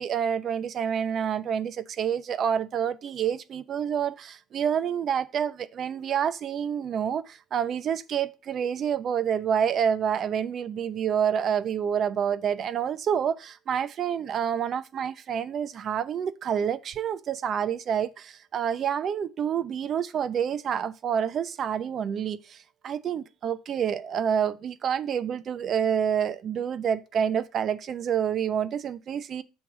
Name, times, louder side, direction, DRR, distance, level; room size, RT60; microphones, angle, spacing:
voice 1, 0.0-29.4, right 8 dB, 45° right, 0.6 m, -28 dB
6.3 x 3.5 x 6.0 m
cardioid pair, 115°, 0 cm